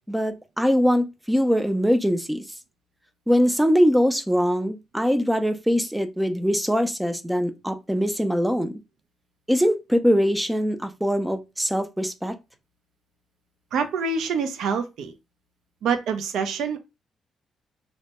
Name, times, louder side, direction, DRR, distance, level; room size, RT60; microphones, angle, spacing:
voice 1, 0.1-2.4 3.3-8.7 9.5-12.3, equal, 5° right, 0.3 m, -22 dB
voice 2, 13.7-15.1 15.8-16.8, right 5 dB, 80° right, 0.4 m, -26 dB
2.1 x 2.1 x 2.8 m
cardioid pair, 95°, 0 cm